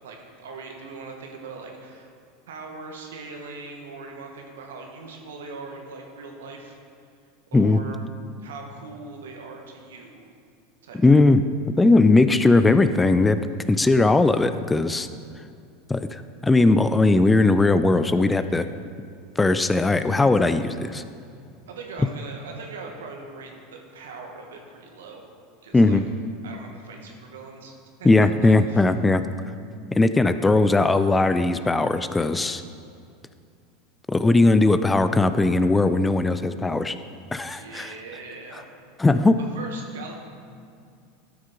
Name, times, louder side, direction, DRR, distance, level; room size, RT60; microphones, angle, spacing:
voice 1, 0.0-2.1 2.5-6.8 7.5-8.0 8.4-10.3 10.8-11.0 21.6-25.2 25.6-26.0 26.4-27.7 28.0-28.8 37.5-38.7 39.5-40.1, right 4 dB, 80° right, 2 dB, 1.3 m, -40 dB
voice 2, 11.0-11.4 11.8-13.4 13.7-15.1 15.9-18.7 19.4-21.0 25.7-26.0 28.0-29.2 29.9-32.6 34.1-37.0 37.3-37.9 39.0-39.4, left 2 dB, 15° left, 11 dB, 0.4 m, -19 dB
12.5 x 6.4 x 3.7 m, 2.4 s
hypercardioid pair, 90°, 0 cm